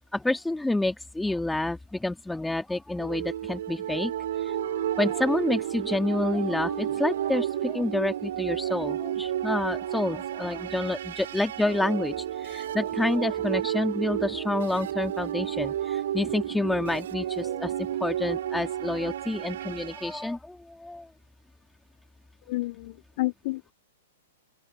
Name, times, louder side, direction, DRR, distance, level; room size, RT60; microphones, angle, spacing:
voice 1, 0.1-4.1 4.4-21.1, left 2 dB, 5° left, 2.8 m, -29 dB
sound 1, 3.0-20.2, right 11 dB, 60° right, 6.5 m, -31 dB
voice 2, 22.5-23.7, left 20 dB, 50° left, 3.8 m, -30 dB
open air
figure-of-eight pair, 110°, 0 cm